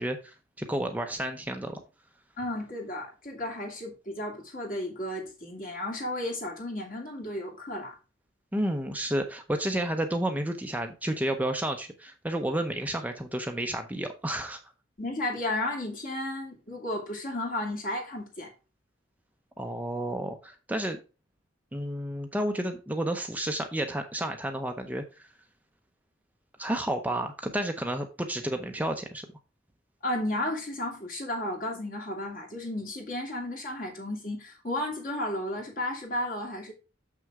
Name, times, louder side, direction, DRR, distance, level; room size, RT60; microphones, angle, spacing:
voice 1, 0.0-1.8 8.5-14.6 19.6-21.0 21.7-25.3 26.6-29.3, right 1 dB, 10° right, 0.7 m, -31 dB
voice 2, 2.4-7.9 15.0-18.5 30.0-36.7, left 1 dB, 45° left, 2.6 m, -33 dB
6.8 x 6.2 x 3.6 m
head